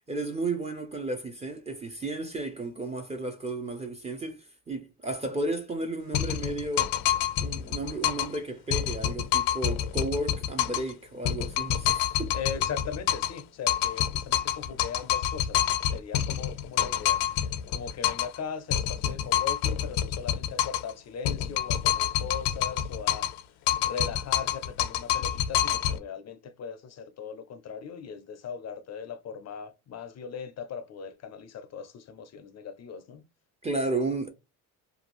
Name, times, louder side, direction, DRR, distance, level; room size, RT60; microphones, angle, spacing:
voice 1, 0.1-6.9 7.4-12.3 33.6-34.3, right 2 dB, 15° right, 0.5 m, -33 dB
sound 1, 6.1-8.4 8.7-10.9 11.2-13.4 13.7-18.4 18.7-20.9 21.2-23.4 23.7-26.0, left 11 dB, 90° left, 0.6 m, -27 dB
voice 2, 12.3-23.3 23.7-33.2, left 6 dB, 40° left, 0.5 m, -39 dB
2.5 x 2.3 x 2.9 m
cardioid pair, 100°, 41 cm